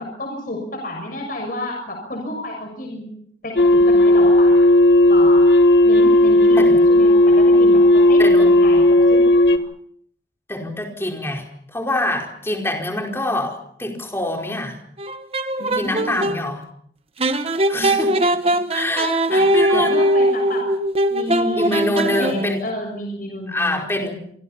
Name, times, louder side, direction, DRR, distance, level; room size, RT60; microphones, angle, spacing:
voice 1, 0.0-3.1 3.4-4.7 5.1-5.5 5.8-8.2 8.6-8.8 9.1-9.6 15.6-16.3 19.0-20.7 21.1-24.1, left 1 dB, 50° left, 2 dB, 6.6 m, -30 dB
sound 1, 3.6-9.6, left 1 dB, 70° left, 1.7 m, -13 dB
voice 2, 8.2-8.5 10.5-14.8 15.7-16.6 17.5-18.2 18.7-19.9 21.6-22.6 23.5-24.1, left 1 dB, 15° left, 2 dB, 4.8 m, -25 dB
sound 2, 15.0-16.4 17.2-22.7, right 1 dB, 35° right, 1.3 m, -20 dB
27.5 x 24.5 x 5.7 m, 0.66 s
head